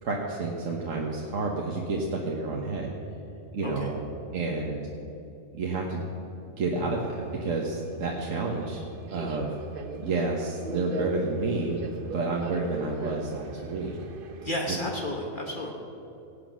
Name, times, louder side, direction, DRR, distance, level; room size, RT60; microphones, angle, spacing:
voice 1, 0.0-2.9 3.5-4.0 4.3-4.8 5.5-6.0 6.6-8.8 9.1-9.5 10.0-13.9 14.7-14.8, right 3 dB, 75° right, -1 dB, 1.6 m, -30 dB
Subway metro underground, 6.8-14.8, right 4 dB, 50° right, 0.9 m, -41 dB
voice 2, 14.4-15.7, left 1 dB, 40° left, 0 dB, 1.3 m, -32 dB
17.5 x 8.3 x 6.2 m, 2.9 s
omnidirectional pair, 1.4 m